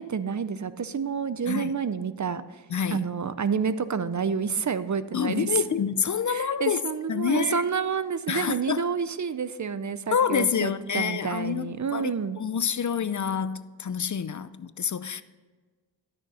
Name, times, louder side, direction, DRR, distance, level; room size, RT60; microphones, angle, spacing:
voice 1, 0.0-2.6 2.9-5.6 6.3-12.4, right 6 dB, 45° right, 0.6 m, -29 dB
voice 2, 2.7-3.1 5.1-6.8 7.1-7.6 8.3-8.9 10.1-15.2, left 7 dB, 45° left, 0.5 m, -27 dB
12.5 x 6.5 x 4.2 m
cardioid pair, 50°, 42 cm